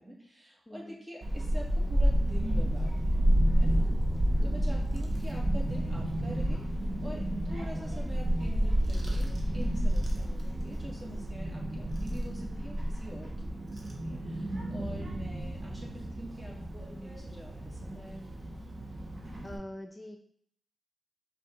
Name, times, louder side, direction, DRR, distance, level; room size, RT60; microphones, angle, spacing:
voice 1, 0.0-3.9 4.4-6.6 7.0-18.4, equal, 25° right, -2 dB, 1.8 m, -45 dB
voice 2, 0.7-1.0 4.3-4.7 19.4-20.2, left 1 dB, 25° left, 3 dB, 0.4 m, -44 dB
Child speech kid speaking / Wind, 1.2-19.6, equal, 50° right, 1.1 m, -30 dB
5.3 x 2.7 x 3.8 m, 0.66 s
cardioid pair, 45°, 0 cm